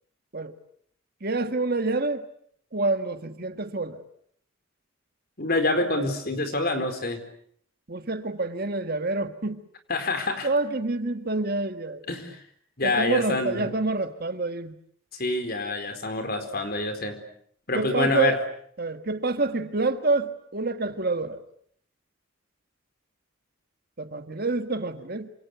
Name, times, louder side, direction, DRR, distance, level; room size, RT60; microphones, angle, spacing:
voice 1, 1.2-2.2 2.7-4.0 7.9-9.6 10.4-12.1 12.8-14.7 17.7-18.4 18.8-21.4 24.0-25.3, right 3 dB, 45° right, 8 dB, 1.7 m, -27 dB
voice 2, 5.4-7.2 9.9-10.5 12.1-12.4 12.8-13.7 15.2-17.2 17.7-18.4, left 2 dB, 45° left, 8 dB, 4.4 m, -26 dB
27.5 x 26.5 x 8.0 m, 0.66 s
head